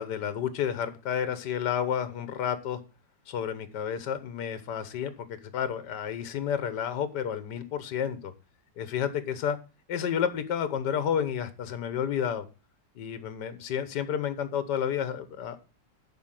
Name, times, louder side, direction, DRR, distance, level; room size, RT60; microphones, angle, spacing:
voice 1, 0.0-2.8 3.3-5.1 5.5-8.3 8.8-9.6 9.9-12.4 12.9-15.6, left 8 dB, 70° left, 11 dB, 1.6 m, -30 dB
11.5 x 4.3 x 7.5 m, 0.32 s
omnidirectional pair, 2.0 m